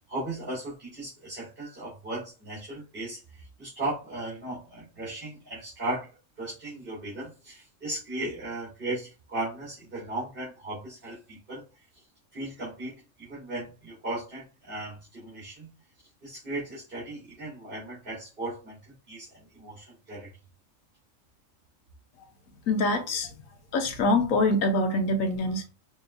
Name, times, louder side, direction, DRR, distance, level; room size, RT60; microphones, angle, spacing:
voice 1, 0.0-6.1 6.4-11.6 12.3-15.7 16.2-20.3, right 2 dB, 40° right, 2.8 m, -36 dB
voice 2, 22.7-23.3 23.7-25.7, left 2 dB, 90° left, 1.3 m, -25 dB
6.3 x 3.5 x 2.2 m
omnidirectional pair, 1.4 m